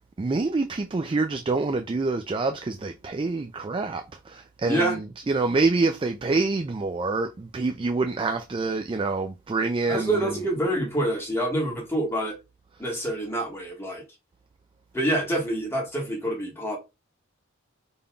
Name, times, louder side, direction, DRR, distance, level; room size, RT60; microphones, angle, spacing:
voice 1, 0.2-10.2, right 3 dB, 25° right, 0.3 m, -26 dB
voice 2, 4.6-5.0 9.9-12.4 12.8-14.0 14.9-16.8, right 1 dB, 10° left, 1.4 m, -26 dB
5.2 x 3.6 x 2.3 m
head